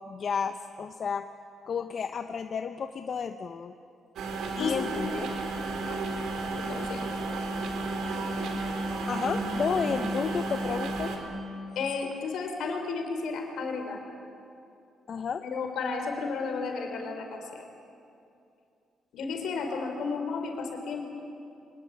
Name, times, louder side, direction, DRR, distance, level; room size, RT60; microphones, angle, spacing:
voice 1, 0.1-1.3 1.7-3.7 4.6-5.3 9.1-11.1 15.1-15.4, left 6 dB, 50° left, 8 dB, 0.9 m, -32 dB
sound 1, 4.2-11.2, right 2 dB, 75° right, 3.9 m, -32 dB
voice 2, 4.6-4.9 5.9-6.0 6.6-7.1 11.8-14.0 15.4-17.6 19.1-21.1, left 4 dB, 75° left, 4 dB, 4.1 m, -33 dB
25.0 x 20.5 x 8.7 m, 2.6 s
cardioid pair, 90°, 0 cm